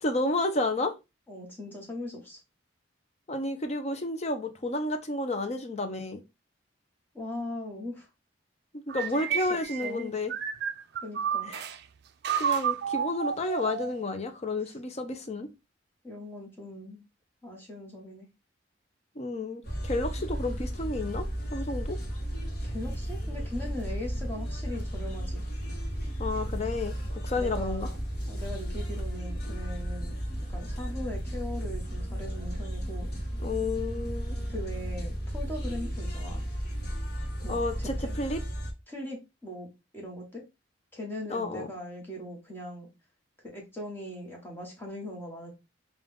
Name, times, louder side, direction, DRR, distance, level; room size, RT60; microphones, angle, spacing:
voice 1, 0.0-0.9 3.3-6.2 8.7-10.3 11.5-11.7 12.4-15.5 19.2-22.0 26.2-27.9 33.4-34.4 37.5-38.4 41.3-41.7, left 2 dB, 35° left, 0.6 m, -31 dB
voice 2, 1.3-2.4 7.1-8.1 9.3-10.1 11.0-11.5 16.0-17.0 17.4-18.3 22.6-25.4 27.3-28.0 28.3-30.1 30.5-33.1 34.5-36.4 37.4-38.2 38.9-39.7 39.9-40.4 40.9-42.9 43.4-45.5, left 1 dB, 10° left, 1.3 m, -40 dB
sound 1, 8.9-11.8 12.2-14.0, right 8 dB, 60° right, 0.4 m, -31 dB
sound 2, 19.6-38.7, equal, 55° left, 1.1 m, -34 dB
3.8 x 2.4 x 3.5 m
head